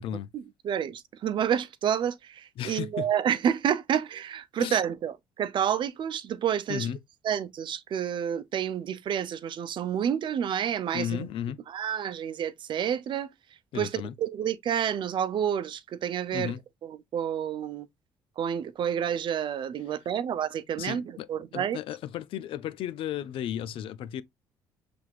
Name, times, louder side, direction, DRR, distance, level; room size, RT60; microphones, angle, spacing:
voice 1, 0.3-6.9 7.2-11.3 11.7-13.3 13.7-16.5 16.8-17.9 18.4-21.8, right 9 dB, 55° right, 0.6 m, -29 dB
voice 2, 2.6-3.1 4.6-4.8 6.7-7.0 10.9-11.6 13.7-14.1 16.3-16.6 20.8-24.2, left 10 dB, 65° left, 0.5 m, -34 dB
5.8 x 3.4 x 2.3 m
supercardioid pair, 65°, 10 cm